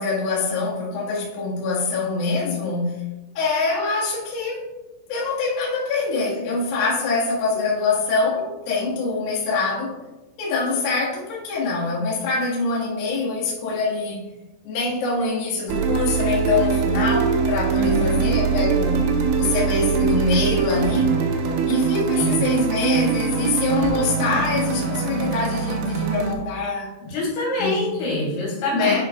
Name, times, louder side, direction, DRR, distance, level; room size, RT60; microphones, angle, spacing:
voice 1, 0.0-3.0 3.3-4.7 5.1-10.0 10.4-14.2 14.6-19.1 19.4-21.1 21.7-26.9 27.6-27.9 28.7-29.1, left 3 dB, 60° left, -6 dB, 3.1 m, -24 dB
sound 1, 15.7-26.4, right 5 dB, 75° right, 3.0 m, -22 dB
voice 2, 17.7-18.3 22.1-22.4 27.0-29.1, left 2 dB, 90° left, -4 dB, 5.2 m, -26 dB
11.5 x 6.0 x 2.3 m, 1.1 s
omnidirectional pair, 5.5 m